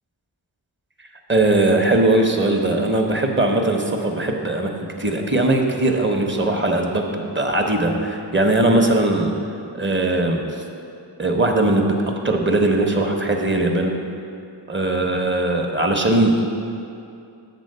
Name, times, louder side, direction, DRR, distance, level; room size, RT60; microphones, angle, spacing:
voice 1, 1.3-4.7 5.0-9.3 9.7-10.4 11.2-12.0 12.2-13.9 14.7-16.4, right 2 dB, 25° right, 2 dB, 0.7 m, -19 dB
7.6 x 3.9 x 6.5 m, 2.5 s
wide cardioid pair, 80°, 43 cm